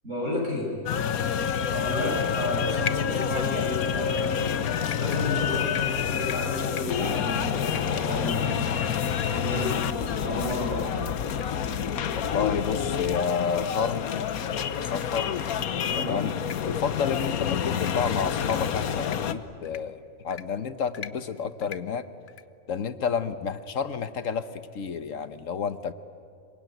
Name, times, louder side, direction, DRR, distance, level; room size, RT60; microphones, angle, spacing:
voice 1, 0.0-0.7 1.7-8.8 9.3-11.1 15.9-16.2, left 1 dB, 55° right, -1 dB, 7.2 m, -32 dB
sound 1, 0.9-19.3, left 8 dB, 90° left, 1.4 m, -28 dB
sound 2, 2.9-3.7 4.2-10.2 10.5-10.6 10.9-11.0 11.4-11.5 11.8-11.9 12.3-12.4 12.8-12.9 13.3-13.4 14.4-14.6 15.0-15.2 15.7-15.9 16.3-16.6 17.0-17.3 17.7-17.9 18.4-18.6 19.0-19.2 19.7-19.8 20.3-20.4 20.9-21.1 21.6-21.8 22.3-22.4, left 7 dB, 45° left, 0.8 m, -39 dB
voice 2, 12.1-15.3 15.9-16.3 16.7-22.1 22.7-25.9, left 6 dB, 65° left, 12 dB, 1.3 m, -30 dB
27.0 x 23.0 x 9.3 m, 2.5 s
omnidirectional pair, 1.5 m